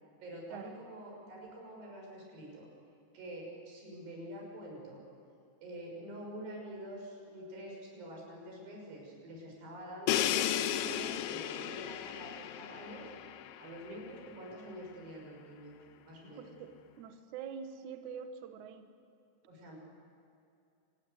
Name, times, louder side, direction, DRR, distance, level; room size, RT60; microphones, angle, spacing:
voice 1, 0.2-2.7 3.1-5.0 5.6-13.1 13.6-15.8 16.1-16.6 19.5-19.8, right 1 dB, 60° right, -1 dB, 8.2 m, -46 dB
Crash cymbal, 10.1-13.9, left 11 dB, 85° left, 3.3 m, -34 dB
voice 2, 16.4-18.9, right 7 dB, 75° right, 7 dB, 1.8 m, -45 dB
27.5 x 20.0 x 8.2 m, 2.5 s
omnidirectional pair, 5.5 m